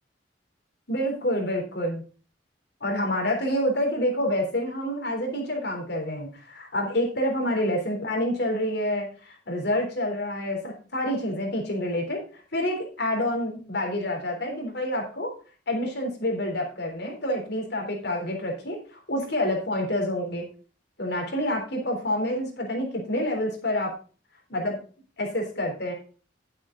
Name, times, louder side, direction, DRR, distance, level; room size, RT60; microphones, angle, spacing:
voice 1, 0.9-2.0 2.8-12.2 12.5-15.3 15.7-20.5 21.0-23.9 24.5-24.8 25.2-25.9, left 1 dB, 60° left, 1 dB, 3.6 m, -28 dB
10.0 x 8.2 x 3.9 m, 0.38 s
head